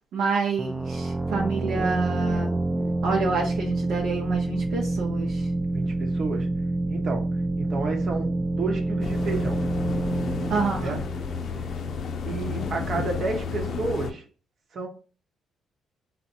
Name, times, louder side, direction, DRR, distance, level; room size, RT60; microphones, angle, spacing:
voice 1, 0.1-2.5 3.0-5.5 10.5-11.0, right 4 dB, 80° right, -1 dB, 0.8 m, -28 dB
sound 1, 0.6-12.1, right 2 dB, 15° right, 0.4 m, -27 dB
voice 2, 5.7-6.5 6.9-7.3 7.6-9.6 10.8-11.0 12.2-14.2 14.7-14.9, right 3 dB, 55° right, 3 dB, 1.1 m, -31 dB
sound 2, 9.0-14.1, left 5 dB, 60° left, 0.5 m, -32 dB
4.1 x 2.2 x 4.3 m, 0.37 s
cardioid pair, 90°, 0 cm